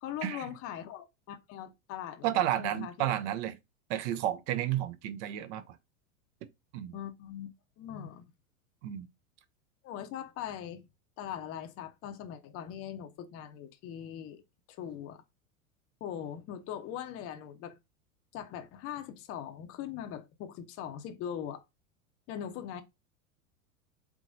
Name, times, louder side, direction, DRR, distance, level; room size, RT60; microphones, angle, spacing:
voice 1, 0.0-3.1 6.9-7.5 7.8-8.2 9.8-10.8 11.2-14.4 14.7-15.2 16.0-17.8 18.3-21.6 22.3-22.8, left 9 dB, 35° left, 0.6 m, -41 dB
voice 2, 2.2-3.5 3.9-5.6 6.7-6.9 8.8-9.1, right 12 dB, 55° right, 0.7 m, -31 dB
3.6 x 3.0 x 2.6 m
hypercardioid pair, 90°, 42 cm